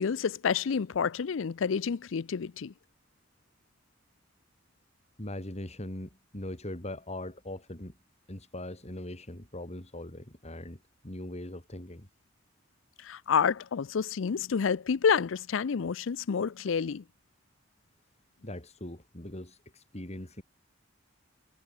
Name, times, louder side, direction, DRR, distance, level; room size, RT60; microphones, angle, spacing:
voice 1, 0.0-2.7 13.0-17.0, left 6 dB, 80° left, 0.5 m, -29 dB
voice 2, 5.2-8.0 8.3-12.1 18.4-20.4, left 1 dB, 35° left, 4.3 m, -41 dB
head